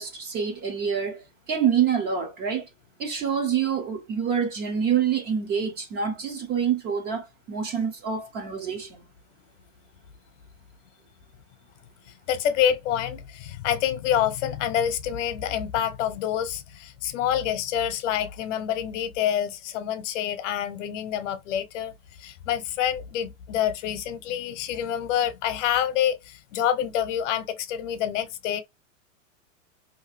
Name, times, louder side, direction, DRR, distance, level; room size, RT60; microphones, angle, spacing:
voice 1, 0.0-2.7 3.0-9.0, right 7 dB, 25° right, 0.6 m, -26 dB
voice 2, 12.3-21.9 22.2-28.6, left 10 dB, 65° left, 0.8 m, -27 dB
2.7 x 2.4 x 3.2 m
supercardioid pair, 145°, 39 cm